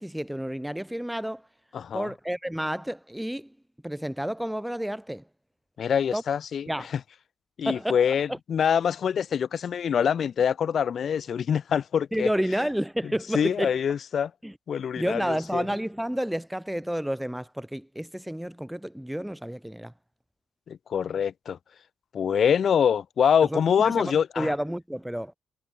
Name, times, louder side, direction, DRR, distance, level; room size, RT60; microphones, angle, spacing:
voice 1, 0.0-1.4 1.9-3.5 3.8-5.2 6.1-6.2 6.7-6.9 7.6-8.0 8.3-8.4 12.1-13.7 14.4-14.5 15.0-19.9 23.5-25.3, equal, 5° right, 0.5 m, -30 dB
voice 2, 1.7-2.1 5.8-7.0 7.6-12.3 13.0-14.3 14.7-15.6 20.7-21.6 22.1-24.5, left 8 dB, 55° left, 1.1 m, -25 dB
cardioid pair, 90°, 0 cm